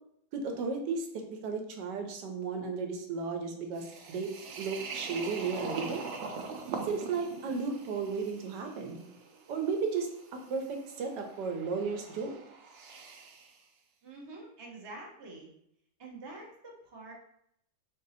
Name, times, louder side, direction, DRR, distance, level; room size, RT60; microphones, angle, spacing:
voice 1, 0.3-4.3 4.6-6.0 6.8-9.0 9.5-12.3, right 5 dB, 85° right, 4 dB, 1.3 m, -34 dB
sound 1, 3.8-13.6, right 4 dB, 65° right, 0.7 m, -43 dB
voice 2, 14.0-15.5 16.0-17.1, right 2 dB, 30° right, -2 dB, 0.5 m, -46 dB
4.0 x 2.7 x 4.0 m, 0.73 s
omnidirectional pair, 1.8 m